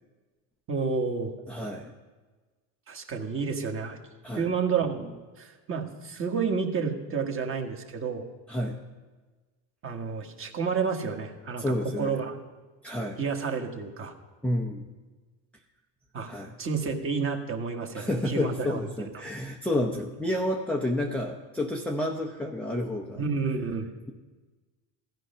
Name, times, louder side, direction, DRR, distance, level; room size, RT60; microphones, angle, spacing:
voice 1, 0.7-1.3 2.9-4.0 4.3-8.3 9.8-12.4 13.2-14.1 16.1-16.3 16.6-18.8 23.2-23.9, right 5 dB, 30° right, 3 dB, 1.6 m, -30 dB
voice 2, 1.5-1.9 4.2-4.4 8.5-8.8 11.6-12.2 12.8-13.2 14.4-14.9 16.3-16.5 17.9-23.2, left 1 dB, 5° left, -1 dB, 0.6 m, -30 dB
16.0 x 13.0 x 5.6 m, 1.3 s
cardioid pair, 160°, 46 cm